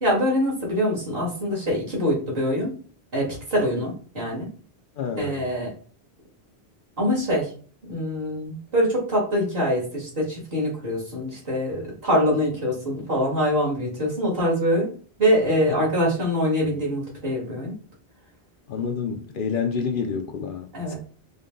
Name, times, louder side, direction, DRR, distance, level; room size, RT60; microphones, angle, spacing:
voice 1, 0.0-2.7 3.1-4.5 5.2-5.7 7.0-7.5 7.9-14.9 15.2-17.7 20.7-21.0, equal, 65° right, 2.2 m, -24 dB
voice 2, 5.0-5.5 18.7-21.0, left 6 dB, 60° left, 0.7 m, -28 dB
5.0 x 2.1 x 3.8 m
omnidirectional pair, 1.1 m